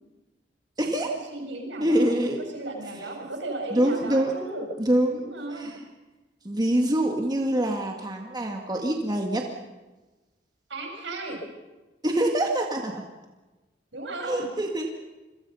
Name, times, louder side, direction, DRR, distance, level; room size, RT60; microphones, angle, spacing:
voice 1, 0.8-1.1 1.8-2.4 3.7-4.3 4.8-5.2 5.6-5.8 6.4-9.5 12.0-13.0 14.2-14.9, right 1 dB, 25° right, 1 dB, 2.0 m, -25 dB
voice 2, 1.3-4.7 5.2-5.7 10.7-11.4 13.9-14.5, right 2 dB, 75° right, 2 dB, 7.2 m, -35 dB
28.0 x 23.0 x 5.7 m, 1.2 s
head